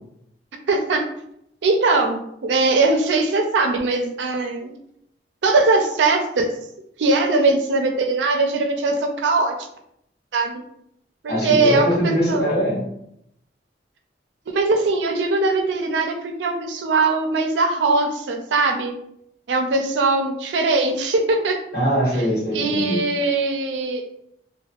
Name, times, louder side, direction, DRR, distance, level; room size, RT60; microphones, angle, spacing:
voice 1, 0.7-1.1 1.6-4.7 5.4-6.5 7.0-9.6 10.3-10.6 11.2-12.4 14.5-18.9 19.5-21.6 22.5-24.1, right 3 dB, 85° right, 4 dB, 0.4 m, -20 dB
voice 2, 11.3-12.8 21.7-23.0, equal, 60° left, -6 dB, 1.1 m, -21 dB
2.5 x 2.2 x 2.3 m, 0.74 s
head